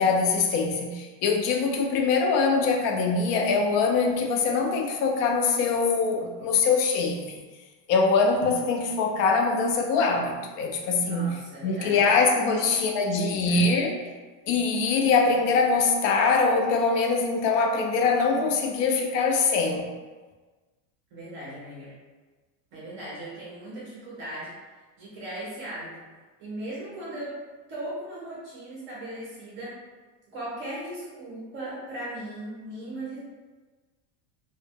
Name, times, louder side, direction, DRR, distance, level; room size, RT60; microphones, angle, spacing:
voice 1, 0.0-7.4 7.9-11.3 11.6-14.0 14.5-19.9, left 4 dB, 85° left, 2 dB, 0.6 m, -23 dB
voice 2, 11.0-13.8 21.1-21.9 22.7-26.1 26.4-27.4 27.7-29.7 30.3-33.2, right 1 dB, 30° right, -7 dB, 0.4 m, -38 dB
2.0 x 2.0 x 3.4 m, 1.3 s
cardioid pair, 175°, 47 cm